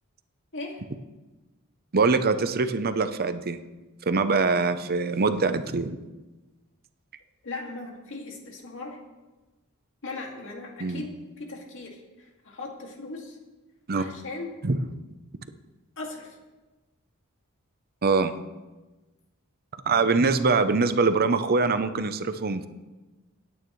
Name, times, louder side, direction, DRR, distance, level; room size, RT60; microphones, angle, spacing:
voice 1, 1.9-3.6 4.1-6.0 10.8-11.1 13.9-14.0 14.6-14.8 18.0-18.3 19.9-22.7, right 4 dB, 45° right, 10 dB, 0.7 m, -23 dB
voice 2, 7.4-9.0 10.0-13.4 14.0-14.5 16.0-16.4, left 3 dB, 60° left, 0 dB, 2.2 m, -38 dB
18.0 x 9.2 x 3.2 m, 1.2 s
head